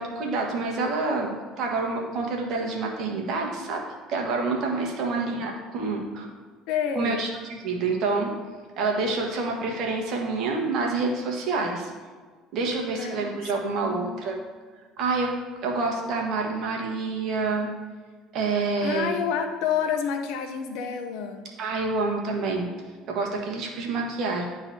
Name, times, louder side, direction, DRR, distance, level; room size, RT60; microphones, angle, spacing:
voice 1, 0.0-3.8 4.1-6.3 6.9-8.3 8.8-11.9 12.5-14.4 15.0-15.3 15.6-17.7 18.3-19.2 21.6-22.7 23.1-24.4, right 3 dB, 60° right, 1 dB, 1.5 m, -27 dB
voice 2, 5.2-5.5 6.7-7.2 12.9-13.5 13.8-14.1 18.8-21.5, left 7 dB, 75° left, 6 dB, 0.8 m, -29 dB
11.0 x 3.9 x 2.8 m, 1.5 s
hypercardioid pair, 75°, 0 cm